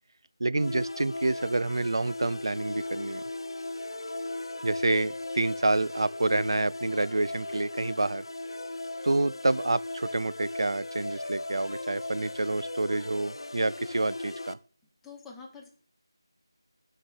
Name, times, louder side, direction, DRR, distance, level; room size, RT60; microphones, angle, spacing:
voice 1, 0.4-3.2 4.6-8.2 9.0-14.6, right 2 dB, 65° right, 0.3 m, -28 dB
sound 1, 0.6-14.5, left 2 dB, 70° left, 0.6 m, -37 dB
voice 2, 15.0-15.7, left 5 dB, 5° left, 0.4 m, -46 dB
6.2 x 4.6 x 6.3 m
figure-of-eight pair, 175°, 3 cm